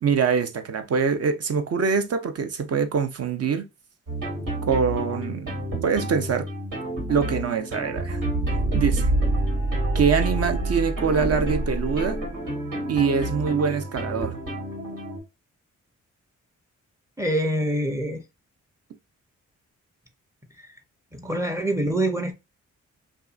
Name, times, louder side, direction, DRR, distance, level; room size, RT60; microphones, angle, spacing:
voice 1, 0.0-3.6 4.7-6.5 7.1-8.2 8.7-9.1 9.9-12.2 12.9-14.3, right 6 dB, 50° right, 0.6 m, -24 dB
sound 1, 4.1-15.2, right 1 dB, 80° right, 1.5 m, -28 dB
voice 2, 17.2-18.2 21.1-22.3, right 1 dB, 10° right, 0.6 m, -25 dB
2.6 x 2.4 x 2.3 m
cardioid pair, 50°, 32 cm